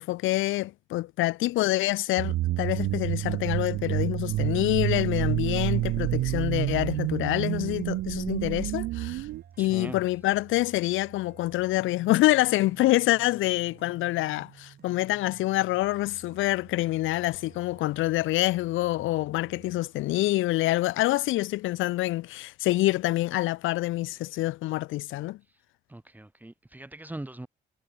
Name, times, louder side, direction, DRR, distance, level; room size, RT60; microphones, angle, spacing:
voice 1, 0.0-9.3 9.6-25.4, left 17 dB, 80° left, 0.5 m, -26 dB
sound 1, 2.2-9.4, right 16 dB, 80° right, 0.5 m, -29 dB
sound 2, 3.8-19.8, right 8 dB, 55° right, 2.7 m, -53 dB
voice 2, 9.6-10.1 25.5-25.6 25.9-27.5, right 1 dB, 10° right, 1.0 m, -41 dB
cardioid pair, 90°, 20 cm